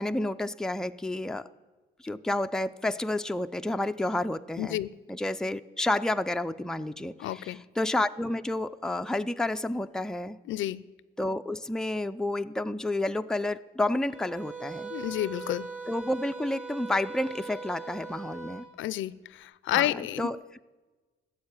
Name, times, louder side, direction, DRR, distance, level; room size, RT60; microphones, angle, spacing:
voice 1, 0.0-1.5 2.0-4.8 5.1-10.4 11.2-14.9 15.9-18.7 19.7-20.4, left 1 dB, 5° left, 8 dB, 0.4 m, -30 dB
voice 2, 4.6-4.9 7.2-7.6 10.5-10.8 14.9-15.7 18.8-20.3, left 14 dB, 80° left, 18 dB, 0.5 m, -30 dB
sound 1, 14.1-18.7, right 4 dB, 40° right, 4.2 m, -40 dB
14.5 x 7.5 x 9.6 m, 1.3 s
cardioid pair, 90°, 20 cm